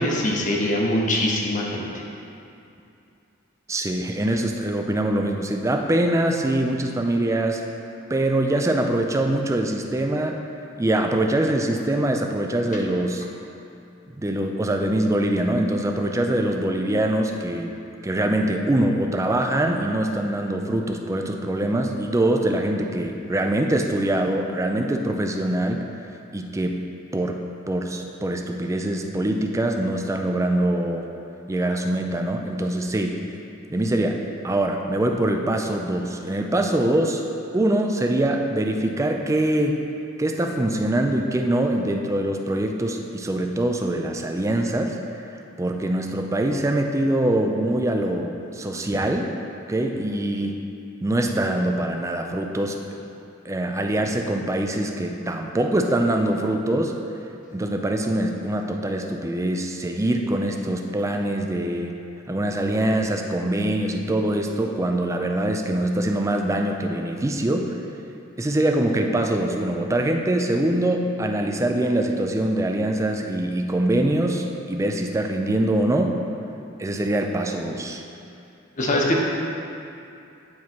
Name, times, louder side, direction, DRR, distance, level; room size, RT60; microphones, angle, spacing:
voice 1, 0.0-1.8 78.8-79.2, left 1 dB, 40° left, -2 dB, 0.9 m, -22 dB
voice 2, 3.7-7.6 8.1-10.5 10.8-13.2 14.2-17.7 18.0-25.9 26.3-26.8 27.1-31.1 31.5-33.2 33.7-37.2 37.5-39.8 40.2-45.0 45.6-49.3 49.7-50.6 51.0-52.8 53.4-57.0 57.5-62.0 62.3-67.8 68.4-76.2 76.8-78.0, right 1 dB, 15° right, 3 dB, 0.4 m, -23 dB
9.3 x 3.1 x 4.4 m, 2.6 s
head